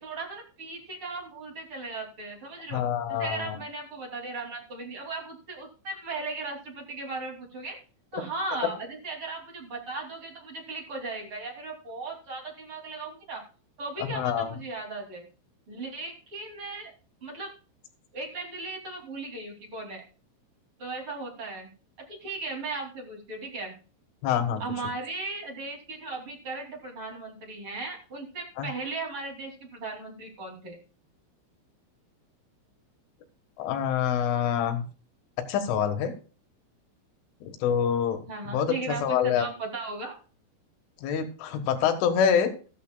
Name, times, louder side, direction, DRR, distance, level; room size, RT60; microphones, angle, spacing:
voice 1, 0.0-2.8 3.1-7.8 8.1-13.4 13.8-15.2 15.7-16.9 17.2-17.5 18.1-20.0 20.8-21.7 22.1-23.7 24.6-30.8 38.3-40.2, right 3 dB, 35° right, 0 dB, 2.7 m, -37 dB
voice 2, 2.7-3.6 14.0-14.5 24.2-24.6 28.6-28.7 33.6-34.8 35.5-36.1 37.4-39.5 41.0-42.5, left 8 dB, 80° left, 6 dB, 3.9 m, -26 dB
15.0 x 13.5 x 2.3 m, 0.37 s
omnidirectional pair, 5.7 m